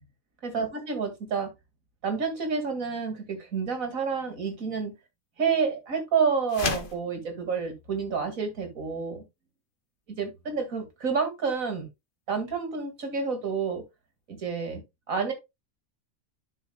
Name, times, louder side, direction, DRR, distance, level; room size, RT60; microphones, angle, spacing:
voice 1, 0.4-1.5 2.0-4.9 5.4-9.2 10.1-11.9 12.3-13.8 14.3-14.8 15.1-15.3, right 5 dB, 80° right, 2.7 m, -29 dB
sound 1, 6.5-7.0, left 5 dB, 40° left, 1.2 m, -30 dB
11.5 x 5.9 x 2.3 m
omnidirectional pair, 1.4 m